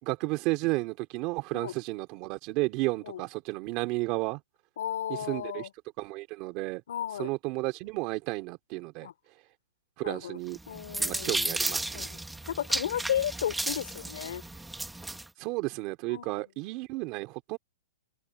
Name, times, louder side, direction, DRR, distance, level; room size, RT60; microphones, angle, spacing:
voice 1, 0.0-4.4 5.1-5.7 6.0-6.8 7.2-9.1 10.0-10.6 11.0-12.1 15.4-17.6, right 22 dB, 30° right, 3.1 m, -32 dB
voice 2, 4.8-5.7 6.9-7.3 9.0-9.1 10.0-10.4 10.7-11.3 11.9-14.4 16.1-16.5, left 10 dB, 65° left, 3.7 m, -34 dB
sound 1, 10.5-15.3, right 2 dB, 5° right, 1.8 m, -33 dB
open air
hypercardioid pair, 165°, 0 cm